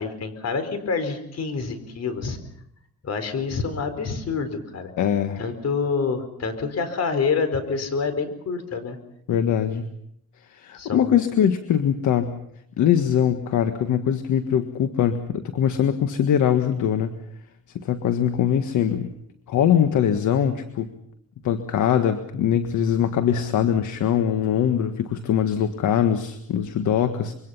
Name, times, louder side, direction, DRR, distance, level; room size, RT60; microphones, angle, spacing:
voice 1, 0.0-2.4 3.0-4.9 5.4-9.0 10.7-11.1, left 5 dB, 55° left, 10 dB, 4.5 m, -27 dB
voice 2, 5.0-5.4 9.3-9.9 10.5-12.3 12.8-17.2 17.7-19.1 19.5-20.9 21.4-27.3, left 9 dB, 75° left, 8 dB, 1.6 m, -22 dB
25.5 x 23.5 x 5.7 m, 0.73 s
cardioid pair, 90°, 30 cm